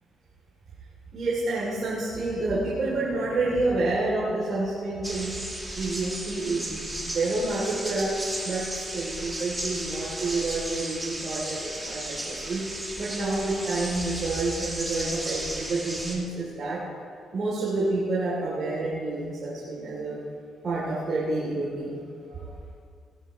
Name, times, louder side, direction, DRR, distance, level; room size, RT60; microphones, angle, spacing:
voice 1, 1.1-5.4 5.7-12.6 13.0-16.8 17.3-20.2 20.6-22.5, right 2 dB, 50° right, -7 dB, 3.0 m, -29 dB
sound 1, 5.0-16.1, right 1 dB, 10° right, 2.4 m, -34 dB
17.0 x 11.5 x 3.1 m, 2.2 s
cardioid pair, 90°, 0 cm